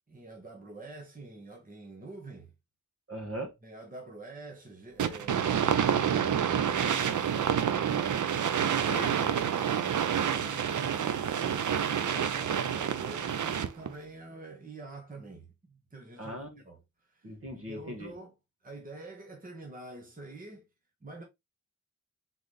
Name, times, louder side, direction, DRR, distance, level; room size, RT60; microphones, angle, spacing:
voice 1, 0.1-2.5 3.6-6.2 9.8-16.4 16.6-16.8 17.1-17.3 17.6-18.3 18.6-20.7 21.0-21.2, right 2 dB, 30° right, 1.2 m, -46 dB
voice 2, 3.1-3.5 8.9-9.4 16.2-16.6 17.2-18.1, equal, 50° right, 1.5 m, -39 dB
sound 1, 5.0-13.9, right 8 dB, 85° right, 0.6 m, -28 dB
3.9 x 3.9 x 3.2 m
wide cardioid pair, 95°, 29 cm